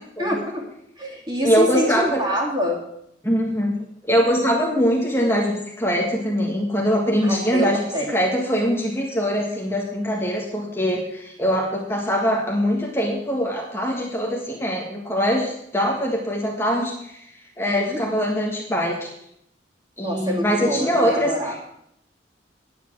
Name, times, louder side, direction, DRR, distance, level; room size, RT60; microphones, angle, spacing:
voice 1, 0.2-0.6 1.0-2.8 7.2-7.7 7.9-8.1 17.7-18.0 20.0-21.5, equal, 25° right, -2 dB, 3.0 m, -26 dB
voice 2, 1.4-2.2 3.2-3.7 4.0-17.3 17.6-19.1 20.0-21.6, equal, 15° left, -2 dB, 1.7 m, -22 dB
9.8 x 7.0 x 9.0 m, 0.76 s
head